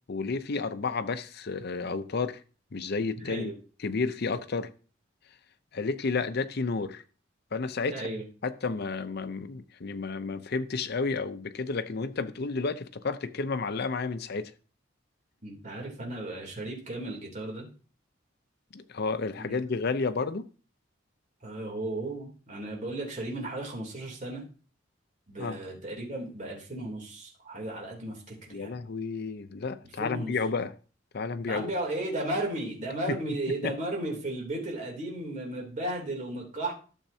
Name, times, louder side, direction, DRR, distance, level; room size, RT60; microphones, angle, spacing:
voice 1, 0.1-2.4 2.7-3.5 3.8-4.7 5.7-7.0 7.5-8.1 8.4-14.5 18.7-20.5 25.4-25.6 28.5-30.7 31.1-31.7 33.1-33.2 33.5-33.7, left 4 dB, 55° left, 0.6 m, -31 dB
voice 2, 7.9-8.3 15.4-17.7 19.3-19.6 21.4-24.4 25.3-28.8 30.0-30.3 31.5-36.7, right 1 dB, 40° right, 3.1 m, -35 dB
12.0 x 7.1 x 2.8 m
head